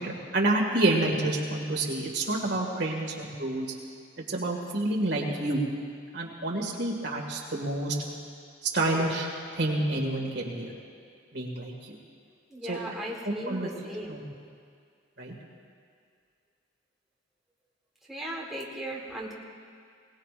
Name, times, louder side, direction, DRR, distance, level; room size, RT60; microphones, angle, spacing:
voice 1, 0.0-3.7 4.3-5.6 6.1-8.0 8.7-10.7 11.3-12.0 12.7-12.8 13.3-13.7 14.1-14.2 15.2-15.3, right 2 dB, 60° right, -1 dB, 2.0 m, -28 dB
voice 2, 12.5-14.2 18.1-19.3, right 1 dB, ahead, -4 dB, 1.5 m, -37 dB
21.0 x 18.5 x 2.5 m, 2.2 s
head